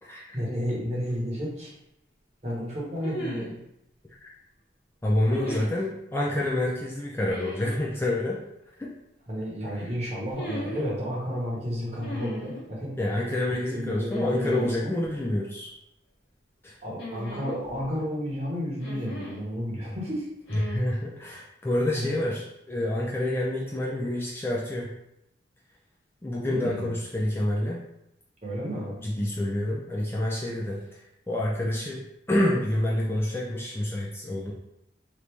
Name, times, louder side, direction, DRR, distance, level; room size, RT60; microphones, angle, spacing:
voice 1, 0.3-1.7 2.4-3.6 5.3-5.6 9.3-13.0 13.5-14.9 16.8-20.3 21.9-22.1 26.4-26.9 28.4-29.0, equal, 40° right, -5 dB, 1.0 m, -32 dB
sound 1, 1.1-1.2 3.0-3.6 5.3-5.8 7.2-7.8 10.3-10.9 12.0-12.6 14.1-14.7 15.0-15.1 17.0-17.9 18.8-19.4 20.5-20.8, left 1 dB, 85° left, 1.2 m, -37 dB
voice 2, 5.0-8.4 8.8-8.9 9.7-9.9 13.0-15.7 16.6-16.8 20.5-24.9 26.2-27.8 29.0-34.5, left 1 dB, 15° left, -4 dB, 0.4 m, -28 dB
3.0 x 2.6 x 3.3 m, 0.81 s
head